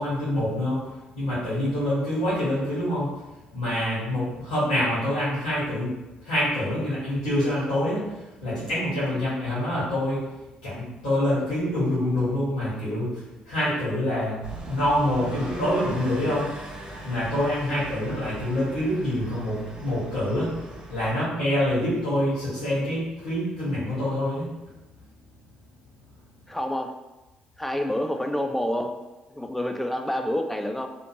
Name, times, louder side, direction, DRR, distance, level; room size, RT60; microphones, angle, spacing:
voice 1, 0.0-3.1 3.5-5.9 6.2-10.2 10.6-14.4 14.7-16.4 17.0-24.5, left 1 dB, 75° left, -11 dB, 1.2 m, -26 dB
sound 1, 14.4-21.1, right 2 dB, 25° right, 0.9 m, -39 dB
voice 2, 26.5-27.0 27.6-29.0 29.3-30.9, left 1 dB, 5° left, 6 dB, 0.3 m, -28 dB
2.6 x 2.4 x 2.9 m, 1.0 s
figure-of-eight pair, 45°, 4 cm